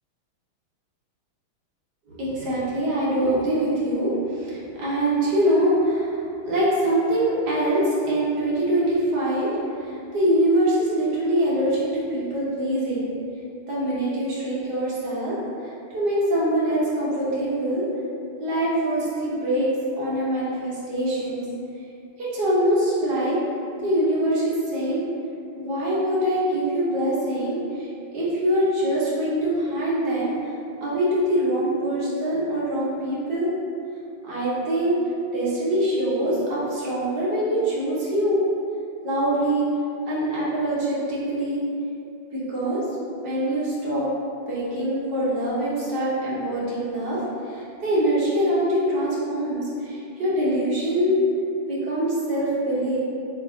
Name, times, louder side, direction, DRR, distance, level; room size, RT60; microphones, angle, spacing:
voice 1, 2.1-6.2 6.4-13.2 13.7-15.4 15.6-17.8 18.4-19.7 20.0-21.4 22.2-23.4 23.8-25.1 25.6-27.9 28.1-30.5 30.8-33.5 34.2-35.0 35.3-38.4 39.0-39.7 40.1-41.6 42.3-42.8 43.2-44.1 44.5-51.2 51.7-53.0, right 1 dB, 55° right, -8 dB, 1.5 m, -24 dB
6.8 x 2.9 x 2.6 m, 2.6 s
omnidirectional pair, 2.3 m